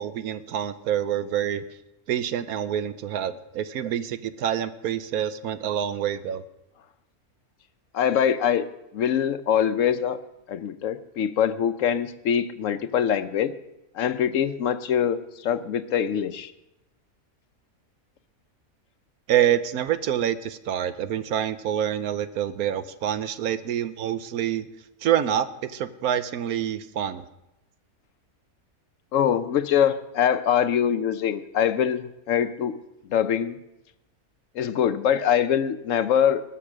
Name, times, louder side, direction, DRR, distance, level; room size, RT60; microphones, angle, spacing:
voice 1, 0.0-1.6 2.1-6.4 19.3-24.7 25.0-27.2, right 10 dB, 90° right, 12 dB, 1.2 m, -26 dB
voice 2, 7.9-8.6 8.9-10.2 10.5-13.5 14.0-16.5 29.1-32.8 33.1-33.5 34.6-36.4, left 8 dB, 65° left, 12 dB, 1.0 m, -23 dB
20.0 x 7.0 x 6.1 m, 0.92 s
omnidirectional pair, 1.5 m